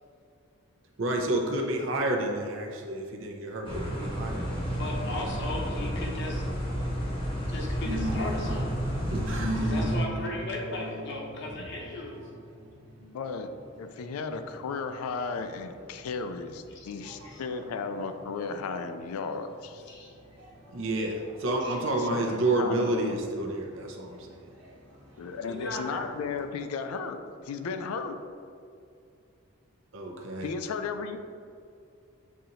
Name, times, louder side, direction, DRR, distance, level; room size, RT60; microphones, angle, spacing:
voice 1, 1.0-4.5 9.1-9.7 20.7-24.5 29.9-30.5, right 2 dB, 60° right, 1 dB, 0.6 m, -30 dB
sound 1, 3.6-10.0, equal, 25° left, 0.8 m, -31 dB
voice 2, 4.7-6.4 7.5-8.8 9.6-12.3 16.7-16.9 17.2-17.4 19.9-20.1 21.6-21.9 25.4-26.1, left 2 dB, 55° left, 0 dB, 0.7 m, -37 dB
sound 2, 7.8-26.4, equal, 90° right, 1.4 m, -40 dB
voice 3, 13.0-13.5 13.8-19.8 22.0-23.2 25.2-28.2 30.4-31.2, left 5 dB, 85° left, 8 dB, 0.3 m, -35 dB
7.3 x 2.8 x 2.6 m, 2.4 s
head